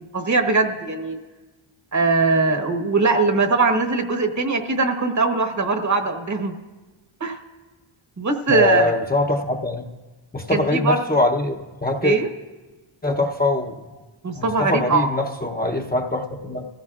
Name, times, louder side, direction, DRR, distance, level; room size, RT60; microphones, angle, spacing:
voice 1, 0.1-1.2 1.9-6.5 7.2-7.4 8.2-8.9 10.5-11.0 12.0-12.3 14.2-15.1, right 3 dB, 35° right, 6 dB, 1.2 m, -21 dB
voice 2, 8.5-9.8 10.3-12.2 13.0-13.8 14.3-16.7, left 2 dB, 20° left, 1 dB, 0.8 m, -23 dB
25.0 x 16.0 x 2.4 m, 1.2 s
wide cardioid pair, 115°, 49 cm